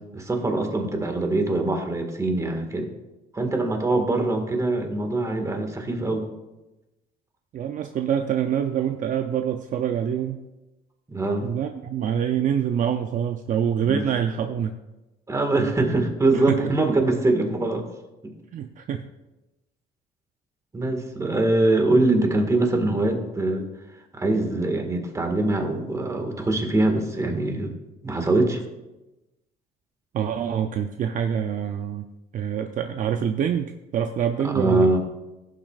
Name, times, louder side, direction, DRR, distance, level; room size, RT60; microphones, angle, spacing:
voice 1, 0.1-2.9 3.3-6.2 11.1-11.5 13.8-14.1 15.3-17.8 20.7-23.7 24.1-27.7 28.0-28.6 34.4-35.0, right 2 dB, 20° right, 4 dB, 1.7 m, -23 dB
voice 2, 7.5-10.4 11.4-14.8 16.3-16.6 18.5-19.1 30.1-32.1 32.3-34.9, right 8 dB, 50° right, 7 dB, 0.5 m, -26 dB
17.0 x 7.5 x 2.4 m, 1.0 s
cardioid pair, 110°, 17 cm